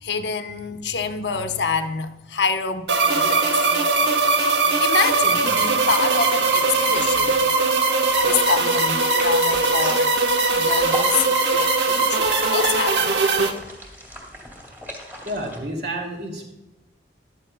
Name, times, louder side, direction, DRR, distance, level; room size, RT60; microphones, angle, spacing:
voice 1, 0.0-2.9 3.1-3.5 4.2-4.5 4.8-7.5 8.2-10.2 10.5-13.0, left 5 dB, 75° left, 0.9 m, -26 dB
sound 1, 2.9-13.5, right 3 dB, 75° right, 1.1 m, -20 dB
sound 2, 8.1-15.6, left 1 dB, 10° right, 2.1 m, -38 dB
voice 2, 15.2-16.5, right 1 dB, 55° right, 2.5 m, -30 dB
14.0 x 11.5 x 2.2 m
head